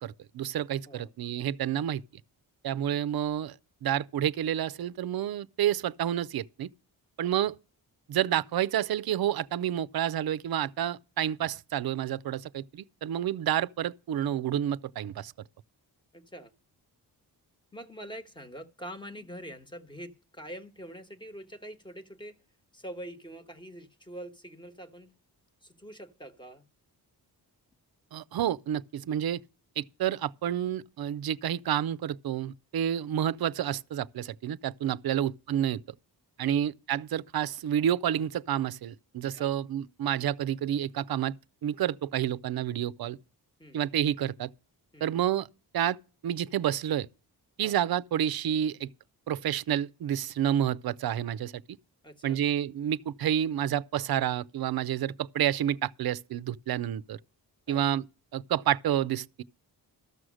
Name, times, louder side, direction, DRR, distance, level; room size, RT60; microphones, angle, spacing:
voice 1, 0.0-2.0 2.6-3.6 3.8-6.7 7.2-7.6 8.1-15.3 28.1-29.4 29.8-35.8 36.4-41.4 41.6-43.2 43.7-44.5 45.0-45.5 45.7-46.0 46.2-47.1 47.6-48.9 49.3-51.6 52.2-57.2 57.7-58.0 58.3-59.4, right 10 dB, 65° right, 0.5 m, -29 dB
voice 2, 16.1-16.5 17.7-22.4 22.7-25.1 25.6-26.6 36.5-36.6 39.3-39.5 43.6-43.8 44.9-45.1 47.6-47.8 52.0-52.4 57.7-57.8, right 1 dB, 10° left, 1.1 m, -44 dB
13.5 x 6.3 x 6.2 m
wide cardioid pair, 125°, 40 cm